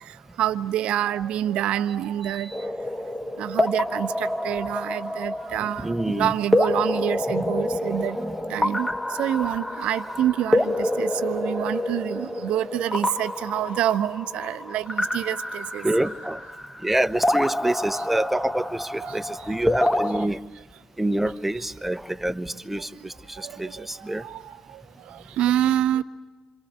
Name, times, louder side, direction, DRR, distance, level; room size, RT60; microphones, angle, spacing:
voice 1, 0.0-2.6 3.4-8.2 8.5-8.9 9.2-15.9 19.0-19.5 23.3-26.0, right 11 dB, 60° right, 13 dB, 0.9 m, -27 dB
voice 2, 2.2-2.6 5.6-6.3 7.3-8.7 15.8-16.4 16.8-20.4 21.0-24.2, right 1 dB, 10° right, 10 dB, 1.0 m, -27 dB
sound 1, 2.5-20.3, left 1 dB, 10° left, 1.4 m, -27 dB
27.5 x 26.5 x 8.0 m, 1.3 s
figure-of-eight pair, 45°, 2 cm